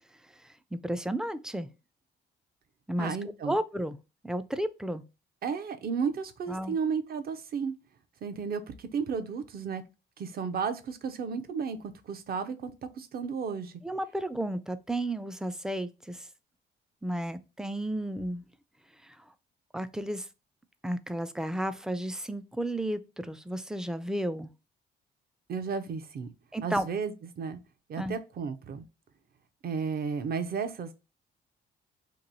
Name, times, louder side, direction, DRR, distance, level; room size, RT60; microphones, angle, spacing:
voice 1, 0.7-1.7 2.9-3.2 3.5-4.0 4.2-5.0 6.5-6.7 13.8-16.3 17.0-18.4 19.0-19.2 19.7-20.3 20.8-24.5 26.5-26.9 28.0-28.1, right 1 dB, 5° right, 0.3 m, -32 dB
voice 2, 3.0-3.6 5.4-7.7 8.2-9.8 10.2-11.8 12.1-12.7 13.0-13.7 25.5-26.3 26.6-27.6 27.9-28.8 29.6-30.9, right 6 dB, 50° right, 0.6 m, -33 dB
2.9 x 2.6 x 3.9 m
cardioid pair, 90°, 20 cm